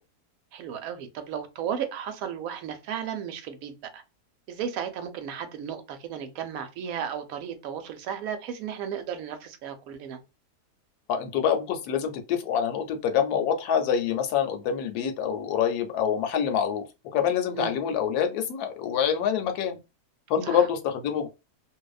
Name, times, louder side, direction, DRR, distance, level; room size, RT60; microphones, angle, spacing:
voice 1, 0.5-4.0 4.5-10.2 17.5-17.8 20.4-20.7, right 8 dB, 70° right, 0.9 m, -34 dB
voice 2, 11.1-16.8 17.1-19.8 20.3-21.3, left 8 dB, 75° left, 1.1 m, -26 dB
2.6 x 2.1 x 2.3 m
omnidirectional pair, 1.7 m